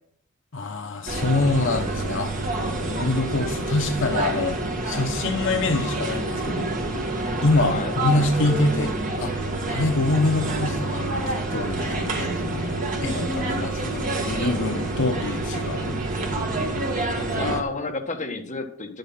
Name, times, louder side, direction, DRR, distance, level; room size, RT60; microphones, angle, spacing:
voice 1, 0.5-4.6 4.8-6.7 7.4-11.2 11.5-16.1 17.3-17.4, left 2 dB, 60° left, 4 dB, 0.9 m, -25 dB
sound 1, 1.1-17.6, right 2 dB, 40° right, 2.0 m, -27 dB
voice 2, 7.7-8.0 17.4-19.0, left 3 dB, 35° left, 3 dB, 1.5 m, -30 dB
11.0 x 7.9 x 5.6 m, 0.62 s
head